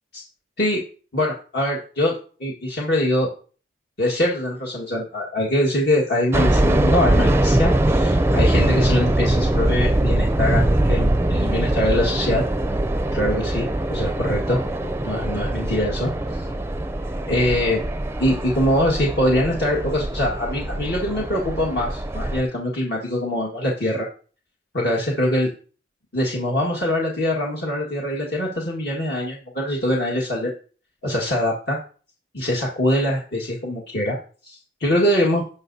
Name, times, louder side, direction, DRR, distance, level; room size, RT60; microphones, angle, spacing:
voice 1, 1.1-2.1 2.4-3.3 4.0-12.4 13.1-14.6 15.0-16.5 17.3-17.8 18.2-24.1 24.7-25.5 26.1-30.5 31.0-31.8 32.3-34.2 34.4-35.4, left 1 dB, 60° left, -3 dB, 1.8 m, -23 dB
sound 1, 6.3-22.4, right 1 dB, 15° right, 0.5 m, -22 dB
17.0 x 5.7 x 2.7 m, 0.40 s
head